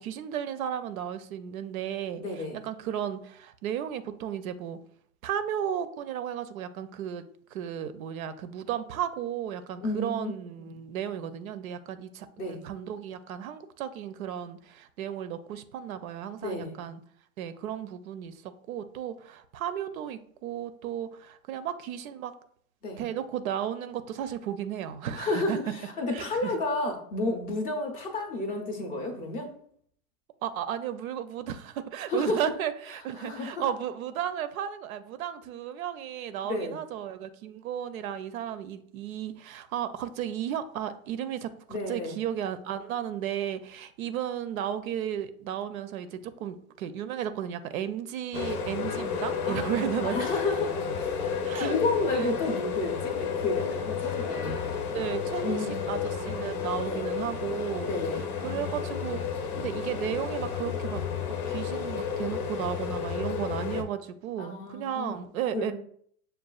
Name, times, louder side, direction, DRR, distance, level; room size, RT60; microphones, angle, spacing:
voice 1, 0.0-4.8 5.2-7.2 7.5-17.0 17.4-22.3 23.0-25.6 26.1-26.5 30.4-50.2 51.4-51.8 52.1-52.3 54.9-57.9 58.4-59.2 59.6-61.0 61.3-65.7, right 10 dB, 70° right, 11 dB, 0.5 m, -34 dB
voice 2, 2.2-2.6 9.8-10.3 10.6-10.7 12.4-12.6 16.4-16.8 22.8-23.0 25.2-29.5 32.1-32.5 33.2-33.7 36.4-36.7 41.7-42.2 49.4-54.8 55.4-55.8 56.8-57.1 57.8-58.3 64.4-65.2 65.5-65.7, left 2 dB, 20° left, 3 dB, 0.5 m, -31 dB
sound 1, 48.3-63.8, left 6 dB, 90° left, 0.7 m, -32 dB
6.5 x 2.3 x 2.3 m, 0.62 s
hypercardioid pair, 125°, 43 cm